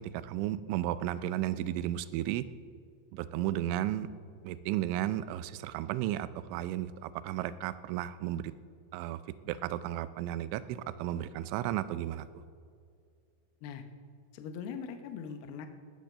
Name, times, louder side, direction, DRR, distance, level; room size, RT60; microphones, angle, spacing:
voice 1, 0.0-2.4 3.1-4.1 4.4-8.4 8.9-9.2 9.5-12.4, right 13 dB, 85° right, 14 dB, 2.9 m, -34 dB
voice 2, 14.3-15.7, left 6 dB, 75° left, 7 dB, 2.3 m, -41 dB
17.0 x 8.0 x 6.5 m, 2.3 s
omnidirectional pair, 5.6 m